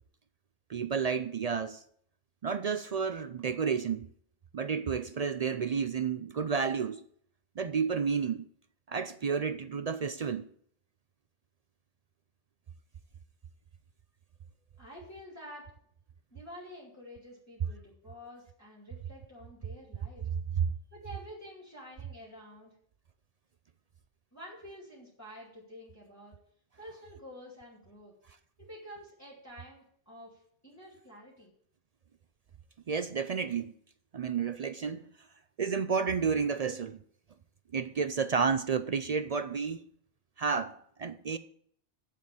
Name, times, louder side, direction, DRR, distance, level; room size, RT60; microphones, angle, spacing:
voice 1, 0.7-1.8 2.4-4.1 4.5-7.1 7.6-8.5 8.9-10.4 20.6-20.7 32.9-33.7 34.1-35.0 35.6-37.0 37.7-39.8 40.4-41.4, right 6 dB, 60° right, 0.4 m, -31 dB
voice 2, 14.8-15.6 16.3-20.3 20.9-22.7 24.3-26.3 26.8-28.1 28.6-31.5, equal, 15° left, 3.1 m, -49 dB
7.6 x 7.5 x 8.6 m
omnidirectional pair, 1.2 m